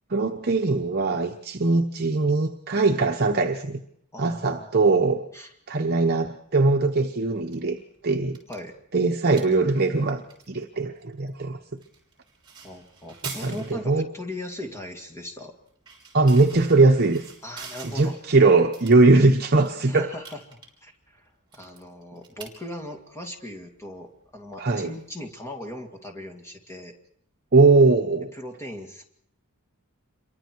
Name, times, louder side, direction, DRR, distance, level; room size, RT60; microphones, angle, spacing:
voice 1, 0.1-3.8 4.2-5.2 5.7-7.8 8.0-8.4 8.9-11.6 13.2-14.0 16.1-17.3 17.8-20.1 24.6-24.9 27.5-28.3, right 3 dB, 45° right, 4 dB, 1.0 m, -20 dB
voice 2, 4.1-5.5 8.5-8.7 12.6-15.5 17.4-18.2 19.9-26.9 28.3-29.0, left 1 dB, 10° left, 3 dB, 2.3 m, -39 dB
sound 1, 7.3-25.6, right 5 dB, 20° right, 5.5 m, -47 dB
27.5 x 23.5 x 4.7 m, 0.71 s
head